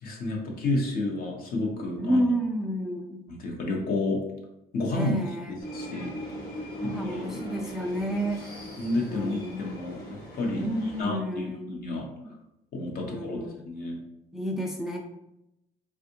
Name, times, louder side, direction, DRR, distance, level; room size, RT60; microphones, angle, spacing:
voice 1, 0.0-2.3 3.3-4.2 4.7-5.1 5.5-6.1 7.0-7.4 8.8-12.1 12.7-14.0, left 2 dB, 60° left, 0 dB, 0.9 m, -31 dB
voice 2, 2.0-3.2 4.9-5.6 6.8-8.4 9.1-9.8 10.6-11.7 13.0-13.6 14.3-15.0, equal, 5° right, 1 dB, 0.3 m, -30 dB
sound 1, 5.6-11.0, equal, 85° left, 1.2 m, -39 dB
3.5 x 2.4 x 2.7 m, 0.86 s
cardioid pair, 110°, 17 cm